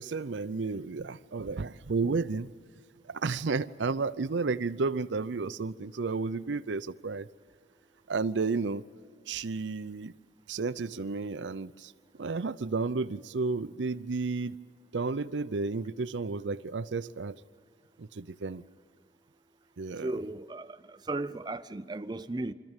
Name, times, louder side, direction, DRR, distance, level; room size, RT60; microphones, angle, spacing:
voice 1, 0.0-2.5 3.0-7.3 8.1-8.8 9.3-10.1 10.5-11.9 12.2-14.6 14.9-17.4 18.0-18.6 19.8-20.1, right 4 dB, 85° right, 0.6 m, -32 dB
voice 2, 20.0-22.5, right 2 dB, 25° right, 0.5 m, -35 dB
25.5 x 14.0 x 9.0 m
head